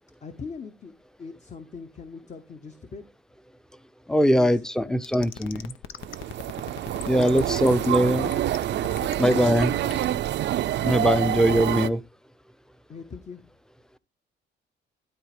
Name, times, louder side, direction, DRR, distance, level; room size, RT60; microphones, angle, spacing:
voice 1, 0.2-0.9 1.2-3.0 4.3-5.0 7.1-7.6 7.8-7.9 9.0-10.2 12.9-13.4, left 5 dB, 35° left, 0.9 m, -41 dB
voice 2, 4.1-5.7 7.1-8.3 9.2-9.7 10.8-12.0, equal, 5° left, 0.6 m, -21 dB
sound 1, 5.0-10.2, left 11 dB, 85° left, 0.8 m, -38 dB
sound 2, 6.0-11.9, right 12 dB, 65° right, 0.5 m, -27 dB
12.5 x 4.2 x 4.9 m
cardioid pair, 90°, 20 cm